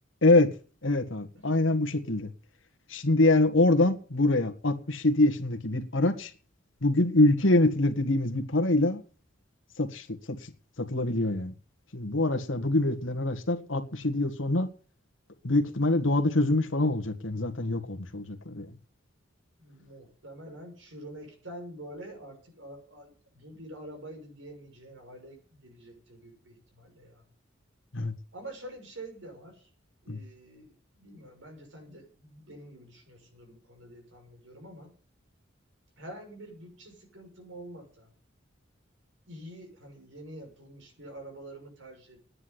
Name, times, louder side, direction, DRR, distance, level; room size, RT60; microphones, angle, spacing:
voice 1, 0.2-0.6 0.8-2.3 2.9-6.3 6.8-9.0 9.8-10.5 10.8-11.5 11.9-14.7 15.4-18.8 27.9-28.1 30.1-30.2, left 2 dB, 85° left, 1.9 m, -25 dB
voice 2, 19.6-27.2 28.3-29.7 30.0-34.9 36.0-38.1 39.3-42.2, right 1 dB, 75° right, 6.5 m, -46 dB
10.0 x 9.6 x 9.9 m
head